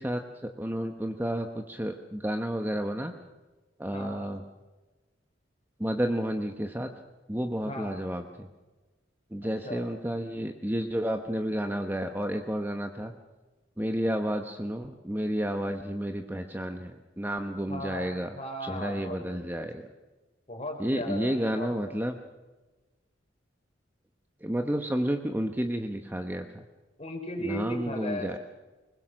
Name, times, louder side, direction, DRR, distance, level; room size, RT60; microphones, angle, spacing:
voice 1, 0.0-3.1 3.8-4.4 5.8-6.9 7.3-8.5 9.3-13.1 13.8-16.9 17.2-18.3 18.6-19.8 20.8-22.1 24.4-26.6 27.4-28.4, equal, 10° right, 5 dB, 1.0 m, -31 dB
voice 2, 3.9-4.3 7.6-8.0 9.4-9.8 17.7-19.5 20.5-22.0 27.0-28.4, left 1 dB, 35° left, 4 dB, 4.4 m, -37 dB
22.5 x 20.0 x 6.4 m, 1.2 s
head